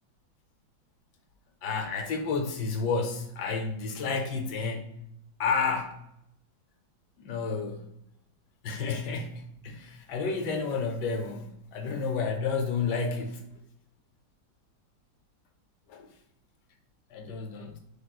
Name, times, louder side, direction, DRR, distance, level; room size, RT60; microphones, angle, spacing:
voice 1, 1.6-5.0 5.4-6.0 7.2-7.9 8.6-13.4 15.9-16.1 17.1-17.8, left 4 dB, 65° left, 1.2 m, -31 dB
6.1 x 3.1 x 2.3 m
omnidirectional pair, 2.2 m